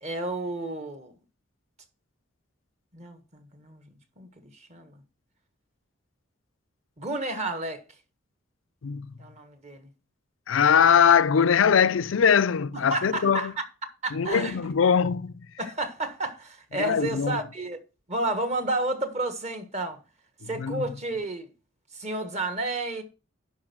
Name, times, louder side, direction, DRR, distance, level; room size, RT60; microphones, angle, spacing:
voice 1, 0.0-1.1 2.9-3.8 4.2-4.3 4.7-4.9 7.0-7.8 9.2-9.9 12.7-13.5 14.0-14.6 15.6-17.8 18.1-20.0 20.5-21.5 22.0-23.0, right 2 dB, 35° right, 1.5 m, -31 dB
voice 2, 8.8-9.1 10.5-13.5 14.1-15.3 16.7-17.4 20.4-20.8, left 7 dB, 75° left, 0.5 m, -21 dB
11.0 x 4.4 x 6.1 m
head